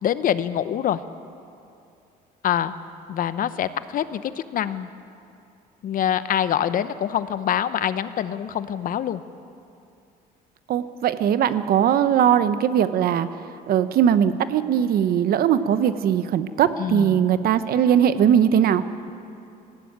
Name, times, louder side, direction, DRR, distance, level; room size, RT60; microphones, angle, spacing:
voice 1, 0.0-1.0 2.4-2.7 3.1-4.9 5.8-9.2 16.8-17.2, left 10 dB, 55° left, 13 dB, 0.8 m, -25 dB
voice 2, 10.7-13.3 13.7-18.8, right 9 dB, 65° right, 12 dB, 1.0 m, -20 dB
19.0 x 15.5 x 8.9 m, 2.7 s
cardioid pair, 110°, 17 cm